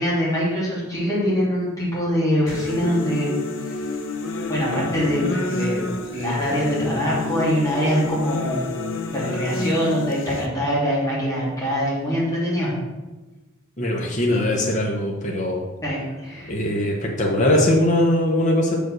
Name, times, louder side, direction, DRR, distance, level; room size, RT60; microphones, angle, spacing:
voice 1, 0.0-3.3 3.7-3.8 4.5-5.8 6.1-8.8 9.1-12.7 15.8-16.5, equal, 15° left, -7 dB, 3.0 m, -23 dB
sound 1, 2.5-10.5, left 2 dB, 70° left, 0.8 m, -29 dB
voice 2, 13.8-15.6 16.5-18.8, left 1 dB, 35° left, -2 dB, 1.1 m, -21 dB
6.3 x 5.3 x 6.1 m, 1.1 s
head